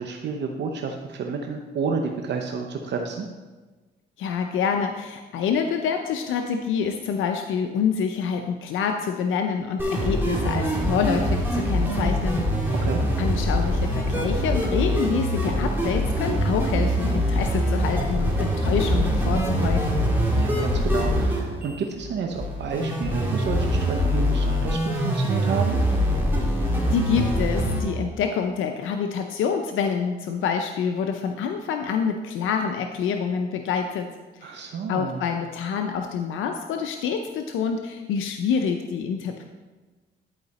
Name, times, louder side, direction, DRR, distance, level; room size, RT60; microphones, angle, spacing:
voice 1, 0.0-3.3 12.7-13.0 20.3-25.8 34.4-35.2, right 5 dB, 60° right, 3 dB, 0.8 m, -30 dB
voice 2, 4.2-12.5 13.2-20.0 26.6-34.1 34.3-34.6 34.9-39.4, left 6 dB, 80° left, 5 dB, 0.6 m, -27 dB
sound 1, 9.8-27.8, equal, 10° right, 2.4 m, -24 dB
11.0 x 4.8 x 4.2 m, 1.3 s
cardioid pair, 90°, 20 cm